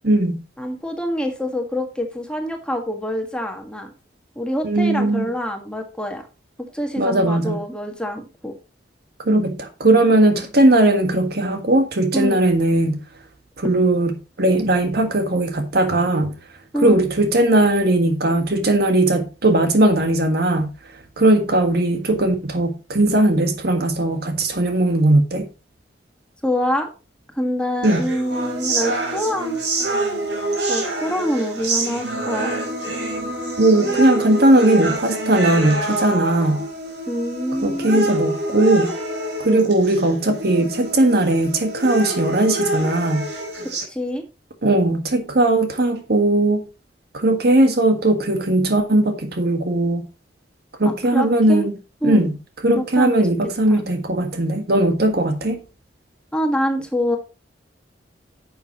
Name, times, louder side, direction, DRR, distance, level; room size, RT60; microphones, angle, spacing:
voice 1, 0.6-3.9 4.4-6.2 6.7-8.5 12.1-12.4 16.7-17.0 26.4-26.9 27.3-29.6 29.9-30.0 30.7-32.5 37.1-38.1 43.9-44.2 50.8-51.7 52.0-52.2 52.7-53.3 53.7-53.8 56.3-57.2, equal, 5° left, 1.7 m, -25 dB
voice 2, 4.6-5.3 7.0-7.6 9.2-13.0 13.6-14.1 14.4-16.4 16.8-20.7 21.2-25.5 27.8-28.1 33.6-36.6 37.6-38.9 39.4-43.3 44.6-46.6 47.1-50.0 50.8-51.7 52.0-52.3 52.6-55.6, right 1 dB, 60° right, 1.6 m, -18 dB
sound 1, 27.8-43.8, right 2 dB, 85° right, 4.5 m, -26 dB
10.5 x 7.1 x 3.0 m
head